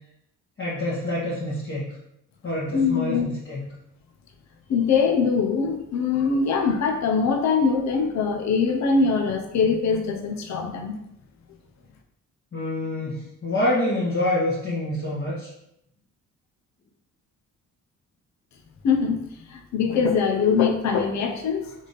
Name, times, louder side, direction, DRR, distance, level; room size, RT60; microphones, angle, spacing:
voice 1, 0.6-1.9 2.4-3.7 12.5-15.5, left 1 dB, 35° left, -8 dB, 1.4 m, -26 dB
voice 2, 2.7-3.3 4.7-10.9 18.8-19.2 19.5-21.7, left 5 dB, 65° left, 4 dB, 0.8 m, -22 dB
3.6 x 3.5 x 4.0 m, 0.78 s
cardioid pair, 90°, 30 cm